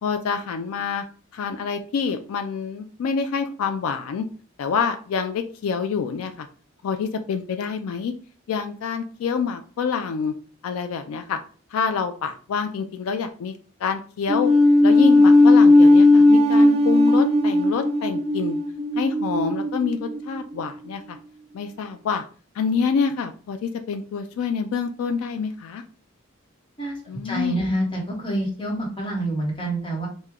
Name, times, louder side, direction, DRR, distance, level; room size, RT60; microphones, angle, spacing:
voice 1, 0.0-1.0 1.3-4.3 4.6-6.5 6.8-8.1 8.5-10.3 10.6-11.4 11.7-13.5 13.8-14.5 14.8-18.6 19.0-21.2 21.5-22.2 22.6-25.8 27.1-27.7, left 5 dB, 85° left, 7 dB, 0.3 m, -27 dB
sound 1, 14.3-20.7, left 2 dB, 30° right, 0.3 m, -16 dB
voice 2, 27.2-30.1, right 1 dB, 25° left, -2 dB, 0.9 m, -27 dB
3.0 x 2.2 x 3.5 m, 0.40 s
head